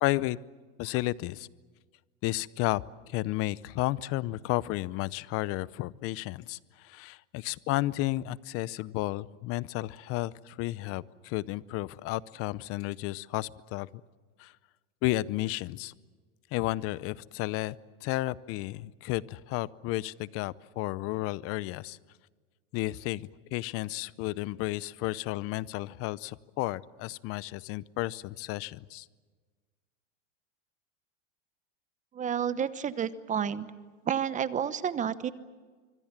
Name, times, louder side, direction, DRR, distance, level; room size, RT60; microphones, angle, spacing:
voice 1, 0.0-0.4 0.8-1.5 2.2-2.8 3.1-13.9 14.4-14.5 15.0-15.9 16.5-17.7 18.0-22.0 22.7-29.1, left 18 dB, 40° left, 20 dB, 0.7 m, -32 dB
voice 2, 32.1-33.7 34.1-35.3, right 8 dB, 20° right, 14 dB, 1.0 m, -30 dB
25.0 x 25.0 x 7.4 m, 1.4 s
supercardioid pair, 140°, 35 cm